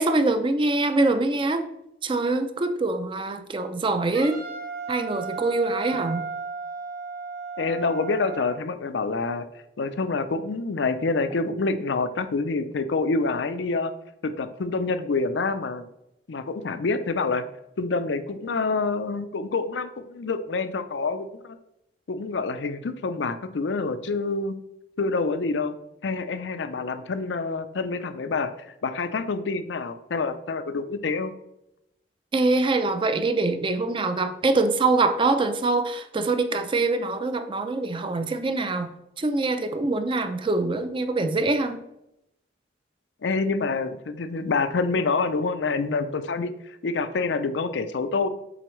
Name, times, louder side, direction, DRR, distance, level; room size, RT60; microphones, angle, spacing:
voice 1, 0.0-1.7 2.0-4.4 4.9-6.2 32.3-38.9 39.2-41.8, right 3 dB, 30° right, 9 dB, 0.5 m, -24 dB
Wind instrument woodwind instrument, 4.1-8.6, right 5 dB, 55° right, 0.9 m, -34 dB
voice 2, 7.6-9.5 9.8-13.9 14.2-15.9 16.3-17.4 17.8-21.6 22.1-24.6 25.0-25.8 26.0-31.3 43.2-48.3, left 3 dB, 85° left, 10 dB, 0.5 m, -27 dB
7.8 x 3.9 x 3.1 m, 0.84 s
head